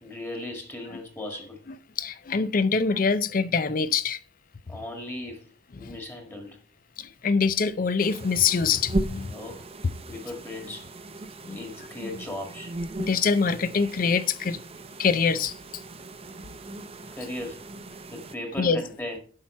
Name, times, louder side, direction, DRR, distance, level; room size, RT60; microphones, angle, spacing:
voice 1, 0.0-1.6 4.7-5.5 5.8-6.6 9.3-9.7 10.0-10.9 11.5-12.7 17.1-17.6 18.1-19.2, left 1 dB, 15° left, 1.7 m, -37 dB
voice 2, 2.0-4.2 5.8-5.9 7.0-9.3 11.4-11.6 13.0-14.6 15.0-15.5 18.6-18.8, left 5 dB, 50° left, 0.5 m, -24 dB
sound 1, 8.0-18.4, right 2 dB, 35° right, 0.6 m, -37 dB
9.7 x 5.9 x 4.3 m
head